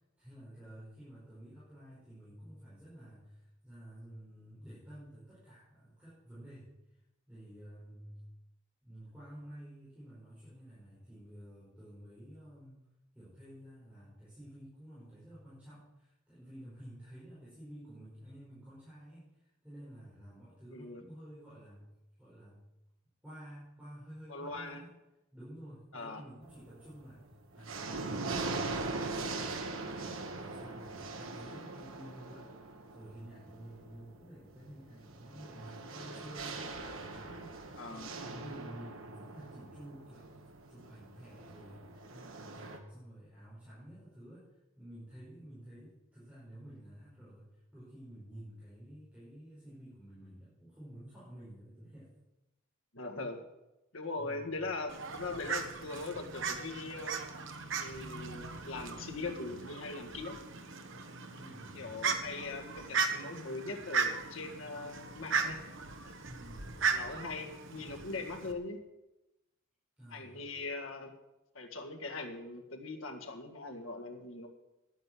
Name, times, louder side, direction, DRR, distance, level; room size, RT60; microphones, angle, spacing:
voice 1, 0.2-6.7 7.3-8.2 8.8-12.8 13.1-19.3 19.6-21.9 22.2-22.6 23.2-24.9 25.3-27.3 27.5-32.5 32.9-44.5 44.8-47.5 47.7-52.1 54.2-54.5 61.3-61.9 66.3-66.8 70.0-70.4, equal, 5° right, -11 dB, 5.3 m, -51 dB
voice 2, 20.7-21.0 24.3-24.8 25.9-26.2 37.8-38.1 52.9-53.4 53.9-57.2 57.8-60.4 61.7-65.6 66.9-68.8 70.1-71.1 71.5-74.5, left 3 dB, 75° left, 5 dB, 1.8 m, -41 dB
sound 1, 26.4-27.0 27.4-42.8, right 3 dB, 80° right, 1.4 m, -41 dB
Fowl, 54.9-68.5, right 5 dB, 65° right, 1.2 m, -37 dB
11.0 x 9.3 x 7.6 m, 0.97 s
head